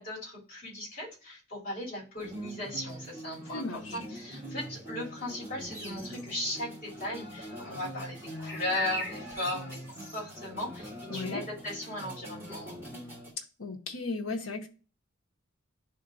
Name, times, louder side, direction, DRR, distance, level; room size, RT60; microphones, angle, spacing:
voice 1, 0.0-12.8, left 1 dB, 45° left, -5 dB, 3.1 m, -37 dB
sound 1, 2.2-13.3, equal, 10° right, 2.0 m, -43 dB
voice 2, 3.5-4.0 11.1-11.4 13.6-14.7, left 3 dB, 90° left, 2 dB, 0.8 m, -35 dB
sound 2, 5.7-6.3 8.4-10.2, equal, 15° left, 2.0 m, -39 dB
10.5 x 3.7 x 2.6 m, 0.37 s
head